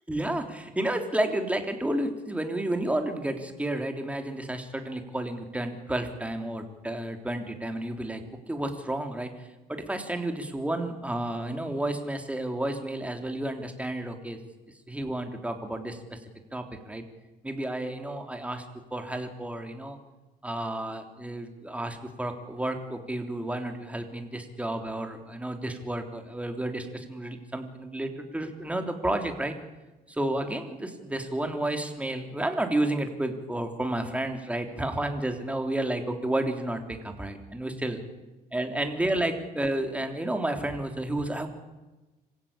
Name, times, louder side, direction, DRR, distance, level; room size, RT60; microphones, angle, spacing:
voice 1, 0.1-8.2 8.5-9.3 9.7-14.4 14.9-16.2 16.5-17.0 17.4-18.6 18.9-20.0 20.4-29.6 30.1-38.0 38.5-41.5, right 1 dB, 10° right, 5 dB, 3.3 m, -31 dB
26.0 x 16.5 x 8.6 m, 1.1 s
cardioid pair, 110°, 17 cm